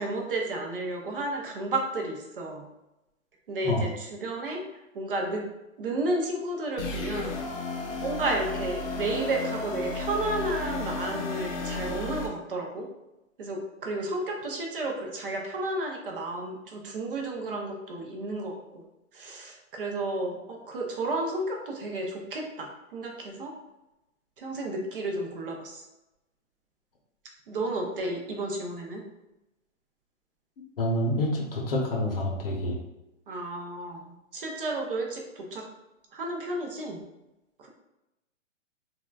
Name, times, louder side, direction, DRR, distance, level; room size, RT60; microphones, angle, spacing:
voice 1, 0.0-2.7 3.5-5.4 5.8-7.5 8.0-12.9 13.4-18.8 19.1-23.5 24.4-25.8 27.5-29.0 33.3-35.6 36.1-37.0, right 2 dB, 45° right, 0 dB, 0.5 m, -32 dB
sound 1, 6.8-12.3, left 3 dB, 90° left, 0.8 m, -33 dB
voice 2, 30.8-32.8, left 1 dB, 45° left, -1 dB, 0.7 m, -27 dB
3.6 x 2.2 x 2.2 m, 0.95 s
hypercardioid pair, 165°, 39 cm